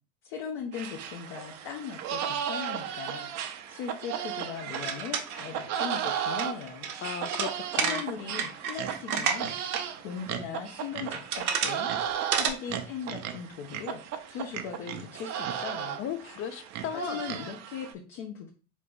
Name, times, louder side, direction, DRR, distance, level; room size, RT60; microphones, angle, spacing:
voice 1, 0.2-6.9 7.8-9.5 10.0-11.9 12.3-14.0 14.3-16.0 16.9-18.5, left 7 dB, 55° left, 1 dB, 0.9 m, -39 dB
sound 1, 0.7-17.9, right 9 dB, 40° right, 0.6 m, -35 dB
sound 2, 4.6-9.8 10.2-10.3 10.9-11.8 12.1-12.5, right 7 dB, 80° right, 0.8 m, -31 dB
voice 2, 7.0-8.0 16.0-17.2, left 10 dB, 30° left, 11 dB, 0.4 m, -36 dB
3.8 x 3.2 x 3.5 m, 0.36 s
hypercardioid pair, 75°, 43 cm